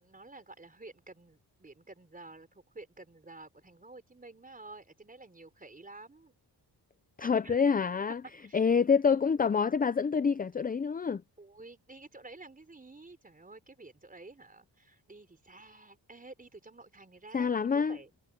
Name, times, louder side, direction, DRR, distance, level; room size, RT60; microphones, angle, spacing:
voice 1, 0.0-6.3 7.4-7.6 8.4-8.6 11.4-18.1, right 2 dB, 20° right, 4.2 m, -51 dB
voice 2, 7.2-8.2 8.5-11.2 17.3-18.0, left 6 dB, 20° left, 0.4 m, -27 dB
wide cardioid pair, 140°, 42 cm